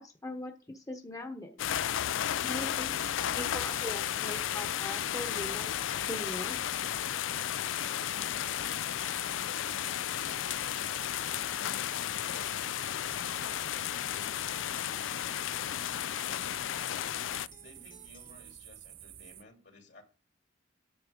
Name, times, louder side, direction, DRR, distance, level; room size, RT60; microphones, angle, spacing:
voice 1, 0.0-1.5 2.4-2.9 3.3-6.6, left 1 dB, 20° left, 3 dB, 1.0 m, -40 dB
sound 1, 1.6-17.5, left 11 dB, 80° left, 0.4 m, -33 dB
Acoustic guitar, 2.5-18.5, equal, 50° left, 1.7 m, -59 dB
sound 2, 2.6-19.4, right 11 dB, 50° right, 0.6 m, -50 dB
voice 2, 17.6-20.0, left 2 dB, 65° left, 3 dB, 2.8 m, -56 dB
9.6 x 7.1 x 5.0 m, 0.36 s
head